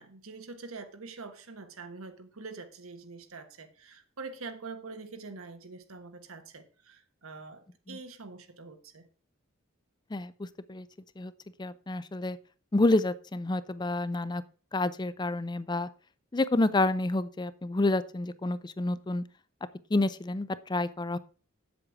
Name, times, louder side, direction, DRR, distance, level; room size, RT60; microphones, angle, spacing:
voice 1, 0.0-9.1, right 4 dB, 85° right, 8 dB, 1.3 m, -45 dB
voice 2, 10.1-10.9 11.2-11.3 11.6-12.4 12.7-14.4 14.7-15.9 16.3-19.2 19.9-21.2, left 2 dB, 20° left, 16 dB, 0.4 m, -29 dB
7.9 x 7.8 x 4.8 m, 0.40 s
head